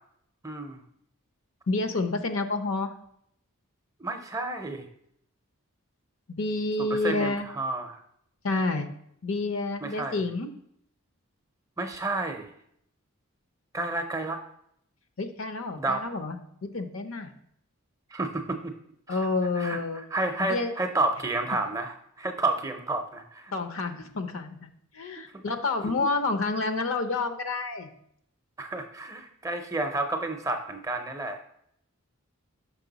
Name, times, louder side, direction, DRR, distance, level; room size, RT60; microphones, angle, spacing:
voice 1, 0.4-0.8 4.0-4.9 6.8-8.0 9.8-10.2 11.8-12.5 13.7-14.4 15.8-16.0 18.1-18.7 19.1-19.2 19.6-19.8 20.1-23.5 25.3-25.4 28.6-31.4, right 2 dB, 15° right, 5 dB, 0.5 m, -30 dB
voice 2, 1.7-2.9 6.3-7.5 8.4-8.9 9.2-10.5 15.2-16.4 16.7-17.3 19.1-20.0 20.4-20.7 23.5-27.9, left 3 dB, 65° left, 7 dB, 0.7 m, -29 dB
6.0 x 5.3 x 3.9 m, 0.70 s
head